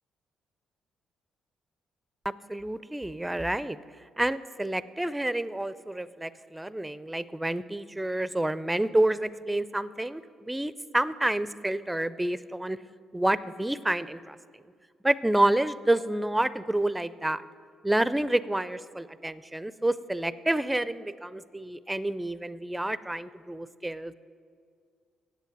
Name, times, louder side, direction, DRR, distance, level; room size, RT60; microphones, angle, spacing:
voice 1, 2.5-3.8 4.2-12.8 13.1-14.4 15.0-17.4 17.8-24.1, right 1 dB, 10° right, 16 dB, 0.4 m, -28 dB
8.2 x 8.0 x 7.8 m, 2.2 s
supercardioid pair, 70°, 0 cm